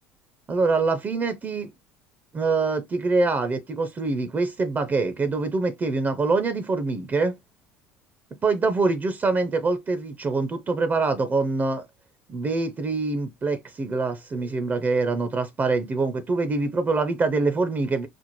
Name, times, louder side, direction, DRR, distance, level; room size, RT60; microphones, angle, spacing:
voice 1, 0.5-1.7 2.3-7.3 8.4-11.8 12.3-18.1, right 3 dB, 30° right, 0.6 m, -24 dB
4.2 x 2.0 x 3.0 m
hypercardioid pair, 75°, 6 cm